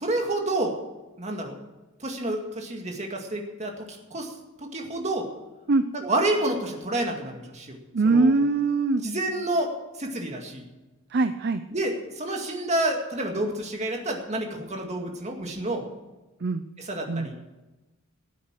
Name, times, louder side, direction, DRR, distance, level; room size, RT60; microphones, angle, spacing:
voice 1, 0.0-0.7 1.2-1.6 2.0-5.3 5.9-7.8 8.0-8.3 9.0-9.7 10.0-10.7 11.7-15.8 16.8-17.4, right 1 dB, 30° right, 2 dB, 2.1 m, -29 dB
voice 2, 7.9-9.0 11.1-11.6 16.4-16.6 17.1-17.3, right 3 dB, 50° right, 10 dB, 0.5 m, -22 dB
16.0 x 8.6 x 7.6 m, 1.1 s
head